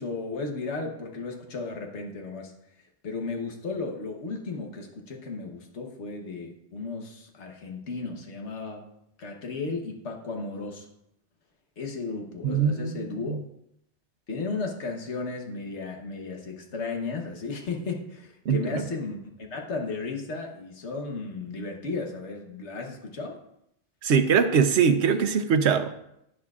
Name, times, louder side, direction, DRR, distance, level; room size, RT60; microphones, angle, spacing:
voice 1, 0.0-2.5 3.0-8.8 9.2-10.9 11.8-13.4 14.3-23.4, left 3 dB, 90° left, 2 dB, 1.4 m, -34 dB
voice 2, 12.4-13.4 18.5-18.6 24.0-26.0, right 6 dB, 80° right, 9 dB, 1.0 m, -22 dB
11.0 x 10.0 x 2.4 m, 0.78 s
omnidirectional pair, 1.1 m